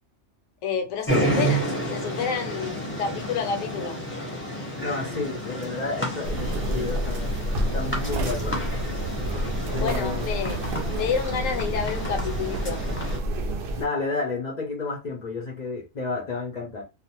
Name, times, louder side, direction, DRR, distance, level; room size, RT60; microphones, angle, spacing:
voice 1, 0.6-4.0 9.4-10.6 10.9-12.8, left 6 dB, 75° left, 1.0 m, -29 dB
sound 1, 1.1-13.2, right 1 dB, 10° left, 0.7 m, -30 dB
voice 2, 4.8-7.4 7.7-8.7 9.7-10.3 13.7-16.8, left 3 dB, 50° left, 0.5 m, -31 dB
sound 2, 6.2-13.9, right 1 dB, 60° right, 0.6 m, -29 dB
2.5 x 2.0 x 2.8 m
omnidirectional pair, 1.4 m